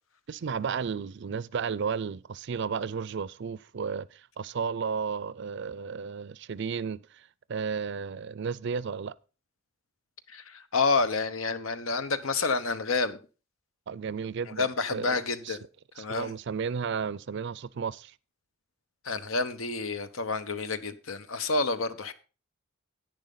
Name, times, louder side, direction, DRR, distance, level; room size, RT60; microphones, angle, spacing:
voice 1, 0.3-9.1 13.9-15.2 15.4-15.6 16.0-18.1, right 6 dB, 55° right, 0.4 m, -33 dB
voice 2, 10.3-13.2 14.6-15.6 16.0-16.3 19.0-22.1, left 3 dB, 80° left, 1.1 m, -29 dB
10.5 x 9.6 x 3.9 m
head